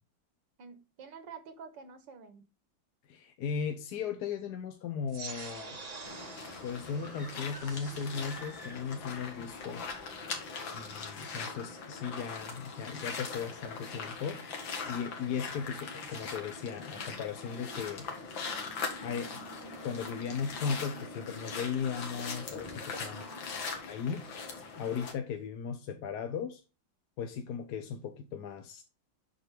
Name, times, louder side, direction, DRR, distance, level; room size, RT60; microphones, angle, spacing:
voice 1, 0.6-2.4 10.5-11.2 23.0-23.7, right 5 dB, 70° right, 1.8 m, -50 dB
voice 2, 3.1-5.8 6.6-9.8 10.7-14.4 14.8-18.1 19.0-19.4 19.8-23.2 23.9-24.3 24.7-26.6 27.2-28.8, left 6 dB, 65° left, 1.3 m, -37 dB
sound 1, 5.1-10.1, right 4 dB, 35° right, 0.7 m, -47 dB
sound 2, 6.0-25.1, left 4 dB, 90° left, 2.3 m, -41 dB
sound 3, 7.0-9.2 9.5-9.6, equal, 15° left, 1.0 m, -50 dB
7.8 x 6.4 x 3.3 m
omnidirectional pair, 2.0 m